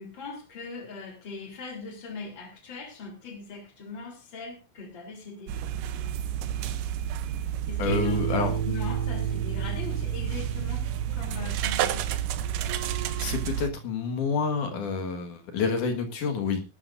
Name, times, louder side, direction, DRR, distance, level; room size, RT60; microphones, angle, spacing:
voice 1, 0.0-5.6 7.7-12.2, left 4 dB, 35° left, 3 dB, 3.8 m, -40 dB
sound 1, 5.5-13.7, right 10 dB, 75° right, 2.3 m, -30 dB
voice 2, 7.8-8.6 12.9-16.6, left 5 dB, 65° left, 5 dB, 3.0 m, -29 dB
sound 2, 7.9-14.9, right 7 dB, 40° right, 2.2 m, -35 dB
20.0 x 12.0 x 2.6 m, 0.27 s
omnidirectional pair, 4.1 m